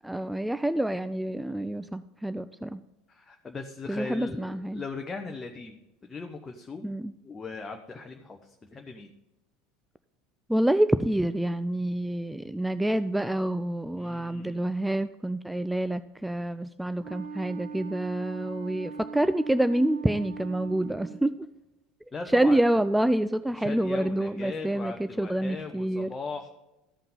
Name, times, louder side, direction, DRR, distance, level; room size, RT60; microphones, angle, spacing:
voice 1, 0.0-2.8 3.9-4.8 6.8-7.1 10.5-21.3 22.3-26.1, right 1 dB, 5° right, 12 dB, 0.3 m, -27 dB
voice 2, 3.1-6.9 7.2-9.1 13.9-14.7 22.1-22.6 23.5-26.5, left 4 dB, 20° left, 4 dB, 0.8 m, -39 dB
Wind instrument woodwind instrument, 17.0-21.2, right 5 dB, 60° right, 1.1 m, -40 dB
14.0 x 5.7 x 5.4 m, 0.97 s
figure-of-eight pair, 70°, 0 cm